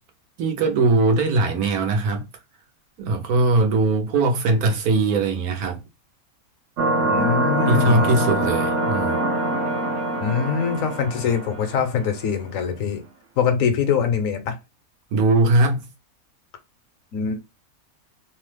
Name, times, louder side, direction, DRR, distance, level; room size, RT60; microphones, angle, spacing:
voice 1, 0.4-2.3 3.0-5.8 7.7-9.2 15.1-15.8, right 3 dB, 85° right, 1.2 m, -20 dB
sound 1, 6.8-12.0, right 1 dB, 65° right, 0.9 m, -24 dB
voice 2, 7.0-8.1 10.2-13.0 13.4-14.6 17.1-17.4, left 7 dB, 70° left, 1.0 m, -23 dB
3.0 x 2.0 x 3.2 m
omnidirectional pair, 1.5 m